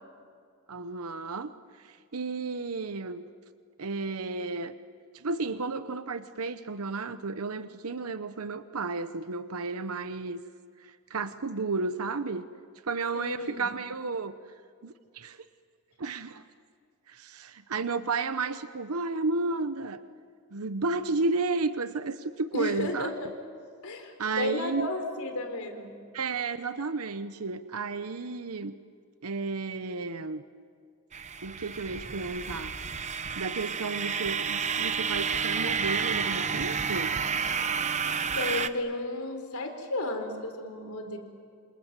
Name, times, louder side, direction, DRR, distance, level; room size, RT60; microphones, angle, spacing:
voice 1, 0.7-3.2 3.8-4.7 5.1-10.4 10.8-12.5 12.8-14.4 14.8-15.5 16.0-16.4 17.1-20.0 20.5-23.1 24.2-24.9 26.1-28.8 29.2-30.4 31.4-32.7 33.4-37.2, right 3 dB, 90° right, 11 dB, 0.9 m, -32 dB
voice 2, 13.1-13.7 22.5-23.3 23.8-25.9 38.3-41.2, left 2 dB, 90° left, 5 dB, 4.3 m, -33 dB
sound 1, 31.1-38.7, right 6 dB, 35° right, 0.8 m, -30 dB
28.0 x 28.0 x 7.6 m, 2.2 s
head